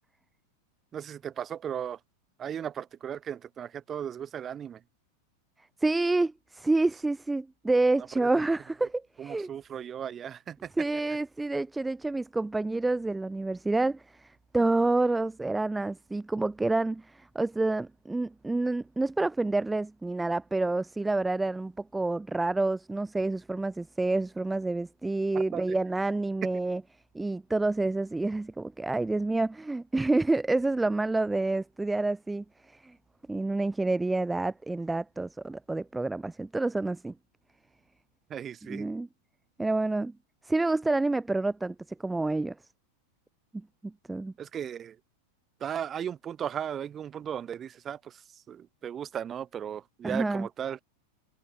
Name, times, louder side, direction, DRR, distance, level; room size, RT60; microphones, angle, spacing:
voice 1, 0.9-2.0 2.4-4.8 9.2-10.7 25.3-25.8 38.3-38.9 44.4-45.0 45.6-50.8, right 9 dB, 25° right, 7.2 m, -36 dB
voice 2, 5.8-9.5 10.8-26.8 27.1-33.0 33.3-37.1 38.6-39.1 39.6-40.1 40.4-41.7 42.0-42.5 43.5-44.3 50.0-50.5, right 2 dB, 5° right, 1.5 m, -28 dB
figure-of-eight pair, 90°, 0 cm